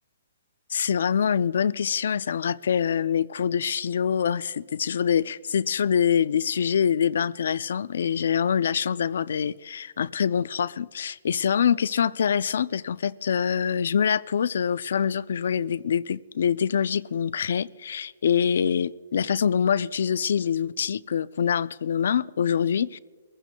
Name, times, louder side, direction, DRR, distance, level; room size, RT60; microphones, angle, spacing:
voice 1, 0.7-23.0, left 7 dB, 70° left, 0.4 m, -25 dB
23.5 x 15.0 x 2.2 m
hypercardioid pair, 160°, 0 cm